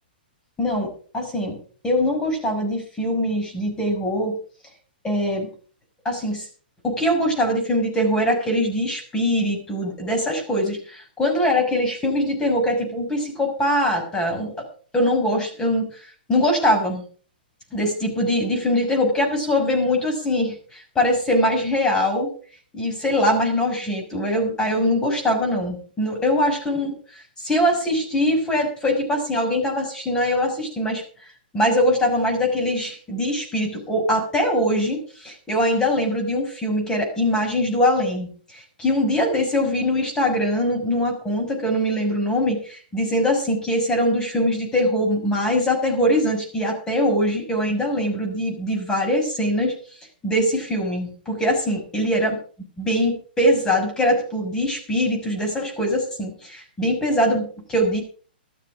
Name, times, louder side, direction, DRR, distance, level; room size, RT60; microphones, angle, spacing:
voice 1, 0.6-1.6 1.8-4.3 5.0-5.5 6.0-6.5 6.8-14.6 14.9-15.9 16.3-17.0 17.7-22.3 22.7-31.0 31.5-49.7 50.2-52.4 52.8-58.0, left 1 dB, 10° left, 1 dB, 5.9 m, -22 dB
13.5 x 13.0 x 5.2 m, 0.42 s
hypercardioid pair, 135°, 5 cm